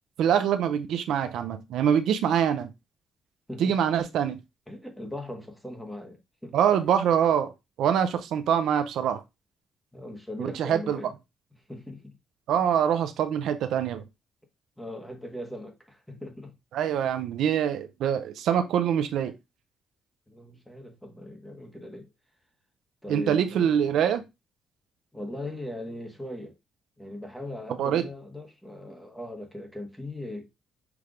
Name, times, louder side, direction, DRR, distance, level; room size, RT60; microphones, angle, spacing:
voice 1, 0.2-2.7 3.6-4.4 6.5-7.5 7.8-9.2 10.4-11.0 12.5-14.0 16.7-19.3 23.1-24.2 27.8-28.0, right 9 dB, 80° right, 0.4 m, -24 dB
voice 2, 4.7-6.6 9.9-11.1 11.7-12.1 14.8-16.5 20.3-22.1 23.0-24.0 25.1-26.5 27.0-30.5, left 1 dB, 5° left, 1.3 m, -39 dB
5.8 x 3.3 x 2.4 m
cardioid pair, 90°, 0 cm